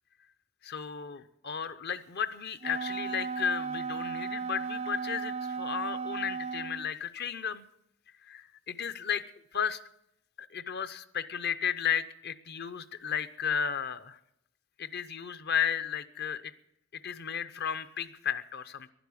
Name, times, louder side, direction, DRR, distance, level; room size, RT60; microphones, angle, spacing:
voice 1, 0.6-7.6 8.3-9.2 9.5-9.8 10.4-14.2 14.8-16.5 16.9-18.9, left 8 dB, 50° left, 13 dB, 0.7 m, -34 dB
Wind instrument woodwind instrument, 2.6-6.9, right 5 dB, 30° right, 0.4 m, -35 dB
11.0 x 11.0 x 8.5 m, 0.79 s
head